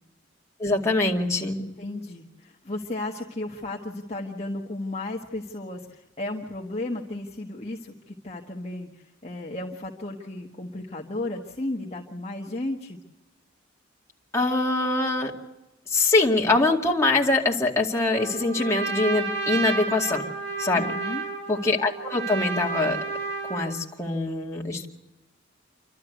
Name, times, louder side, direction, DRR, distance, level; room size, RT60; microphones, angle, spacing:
voice 1, 0.6-1.6 14.3-15.3 15.9-20.3 20.6-21.0 21.5-23.0 23.4-24.9, left 2 dB, 15° left, -2 dB, 2.3 m, -23 dB
voice 2, 1.6-13.0 20.8-21.2, left 2 dB, 35° left, -2 dB, 1.4 m, -34 dB
Trumpet, 18.1-23.8, right 4 dB, 80° right, 7.3 m, -31 dB
28.5 x 12.5 x 8.1 m, 1.0 s
head